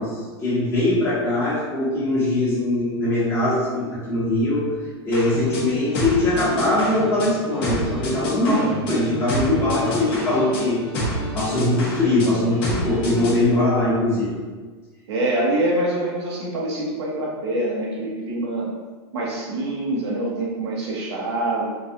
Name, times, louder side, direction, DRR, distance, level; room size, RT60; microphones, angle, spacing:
voice 1, 0.0-4.7 5.0-10.8 11.3-14.3, left 2 dB, 20° left, -10 dB, 1.4 m, -21 dB
sound 1, 5.1-13.4, equal, 45° left, 1.1 m, -28 dB
voice 2, 15.1-18.7 19.1-21.7, right 1 dB, 80° right, -4 dB, 1.0 m, -25 dB
3.9 x 2.5 x 2.6 m, 1.4 s
supercardioid pair, 145°, 14 cm